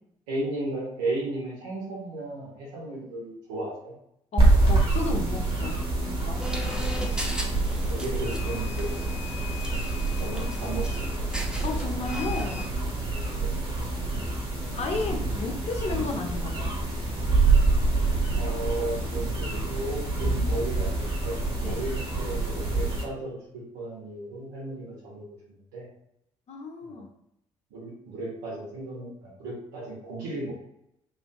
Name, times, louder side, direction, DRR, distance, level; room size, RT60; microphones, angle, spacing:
voice 1, 0.3-3.9 6.9-7.0 7.9-9.1 10.2-11.3 13.4-13.5 18.4-25.2 25.7-25.8 26.8-27.0 27.7-30.6, right 2 dB, 80° right, -4 dB, 0.8 m, -35 dB
voice 2, 4.3-6.5 11.6-12.6 14.7-16.7 21.6-21.8 26.5-27.1, left 3 dB, 45° left, 3 dB, 0.7 m, -33 dB
sound 1, 4.4-23.0, right 2 dB, 35° right, 1.1 m, -26 dB
sound 2, 6.4-12.7, left 1 dB, 5° right, 0.7 m, -37 dB
3.2 x 2.5 x 2.2 m, 0.77 s
hypercardioid pair, 45°, 15 cm